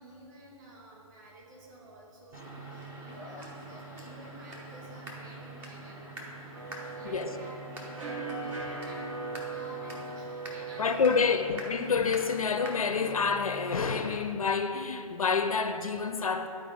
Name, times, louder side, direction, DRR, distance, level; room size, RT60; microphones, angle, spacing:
voice 1, 0.0-6.1 6.6-11.5, right 1 dB, 30° right, 1.9 m, -51 dB
sound 1, 2.3-14.2, right 2 dB, 10° right, 0.6 m, -45 dB
sound 2, 6.5-13.9, right 3 dB, 60° right, 1.7 m, -41 dB
Wind instrument woodwind instrument, 7.9-12.6, right 1 dB, 90° right, 1.5 m, -56 dB
voice 2, 10.8-16.5, left 5 dB, 70° left, 0.5 m, -28 dB
11.0 x 4.4 x 3.7 m
figure-of-eight pair, 140°, 19 cm